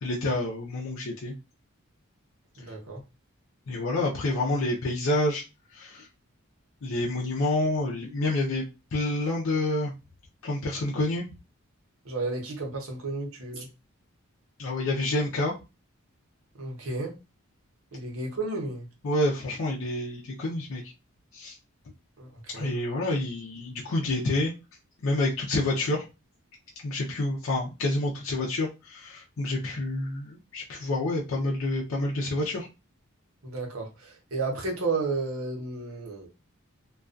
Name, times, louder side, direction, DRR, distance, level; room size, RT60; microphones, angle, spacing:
voice 1, 0.0-1.3 3.7-5.4 5.7-6.1 6.8-8.6 8.9-9.9 10.4-11.3 14.6-15.5 19.0-20.8 21.3-21.6 22.5-24.5 25.0-26.1 26.8-32.7, left 2 dB, 70° left, -3 dB, 0.5 m, -28 dB
voice 2, 2.6-3.0 12.0-13.7 16.5-17.1 17.9-18.8 22.2-22.7 33.4-36.3, right 3 dB, 70° right, 1 dB, 0.8 m, -32 dB
2.3 x 2.3 x 2.4 m, 0.27 s
head